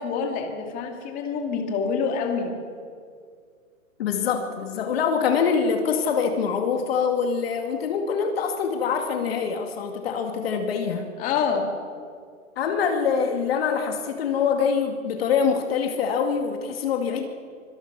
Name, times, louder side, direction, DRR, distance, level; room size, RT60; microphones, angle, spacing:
voice 1, 0.0-2.5 11.2-11.7, left 5 dB, 20° left, 3 dB, 2.5 m, -26 dB
voice 2, 4.0-11.1 12.6-17.3, left 6 dB, 45° left, 4 dB, 2.3 m, -24 dB
25.0 x 25.0 x 6.1 m, 2.1 s
hypercardioid pair, 155°, 41 cm